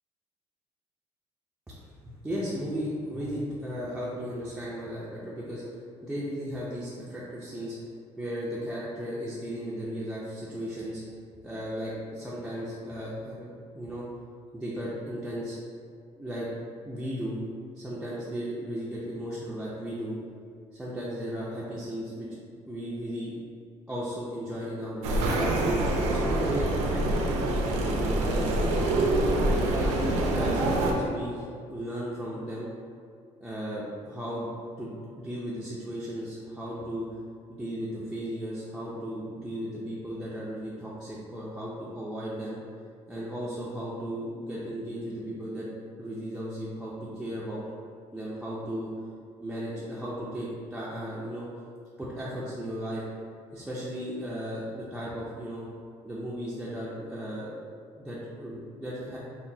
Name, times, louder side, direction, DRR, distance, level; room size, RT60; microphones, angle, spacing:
voice 1, 1.7-7.8 8.2-11.0 11.4-14.1 14.5-15.6 16.2-16.5 16.8-17.4 17.8-20.2 20.7-22.4 22.7-23.3 23.9-25.5 26.1-29.0 29.5-32.7 33.4-34.5 34.8-37.1 37.5-42.6 43.1-45.7 46.0-47.6 48.1-48.9 49.4-51.5 52.0-53.0 53.5-55.7 56.1-57.5 57.9-59.2, equal, 5° right, -8 dB, 0.4 m, -35 dB
sound 1, 25.0-30.9, right 1 dB, 70° right, 0.5 m, -25 dB
5.7 x 2.1 x 2.6 m, 2.3 s
cardioid pair, 180°, 12 cm